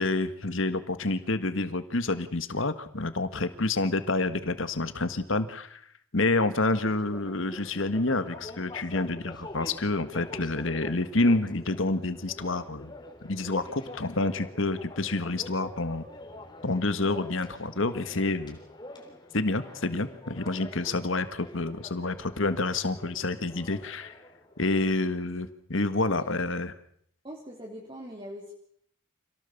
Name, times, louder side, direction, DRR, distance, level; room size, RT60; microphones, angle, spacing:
voice 1, 0.0-5.8 6.1-12.9 13.2-16.0 16.6-18.6 19.3-24.2 24.6-26.7, left 2 dB, 65° left, 11 dB, 1.6 m, -28 dB
sound 1, 6.7-25.2, left 1 dB, 20° left, 3.8 m, -46 dB
voice 2, 27.2-28.5, equal, 25° right, -1 dB, 3.3 m, -42 dB
27.0 x 18.0 x 7.1 m, 0.66 s
head